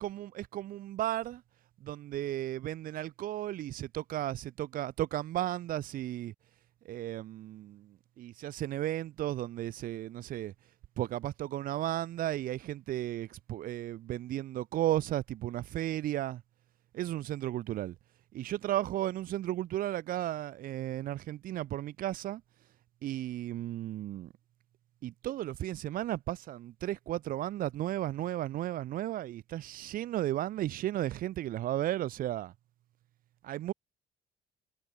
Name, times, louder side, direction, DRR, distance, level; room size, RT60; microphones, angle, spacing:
voice 1, 0.0-1.4 1.8-6.3 6.8-10.5 11.0-16.4 16.9-18.0 18.3-22.4 23.0-24.3 25.0-32.5 33.4-33.7, right 13 dB, 60° right, 0.5 m, -34 dB
cardioid pair, 110°, 17 cm